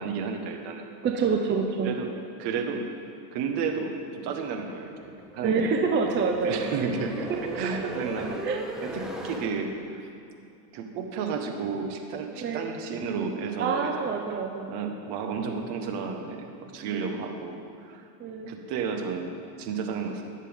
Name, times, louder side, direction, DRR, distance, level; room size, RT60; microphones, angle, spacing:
voice 1, 0.0-0.8 1.8-2.1 2.4-2.9 3.3-5.8 6.2-8.4 8.8-10.0 10.7-14.1 14.7-18.0 18.5-19.3 19.6-20.2, right 5 dB, 55° right, 4 dB, 1.5 m, -32 dB
voice 2, 1.0-1.9 5.4-6.6 7.3-7.7 8.4-8.6 12.4-12.7 13.6-14.7 16.9-17.2 18.2-18.5, right 5 dB, 25° right, 2 dB, 0.7 m, -27 dB
sound 1, 4.8-9.5, right 1 dB, ahead, 1.1 m, -38 dB
19.0 x 7.4 x 3.6 m, 2.5 s
supercardioid pair, 130°, 49 cm